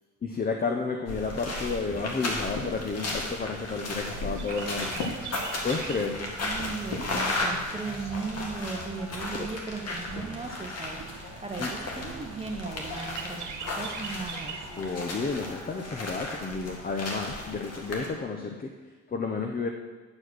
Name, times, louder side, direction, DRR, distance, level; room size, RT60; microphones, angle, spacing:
voice 1, 0.2-5.0 5.6-6.3 9.3-9.5 11.6-11.7 14.8-18.7 19.1-19.7, left 4 dB, 30° left, 3 dB, 0.8 m, -31 dB
sound 1, 1.1-18.1, left 2 dB, 55° left, 1.9 m, -35 dB
sound 2, 1.9-2.7 3.5-3.6 4.2-4.5 4.8-5.2 5.9-6.0 6.6-7.3 8.3-8.5 9.0-9.2 10.1-10.3 10.7-10.8 11.1-11.5, left 3 dB, 80° left, 1.5 m, -38 dB
Chirp tweet, 4.0-14.8, right 6 dB, 75° right, 0.9 m, -44 dB
voice 2, 6.4-14.7, right 4 dB, 20° right, 3 dB, 0.9 m, -37 dB
9.6 x 4.7 x 6.2 m, 1.4 s
cardioid pair, 90°, 30 cm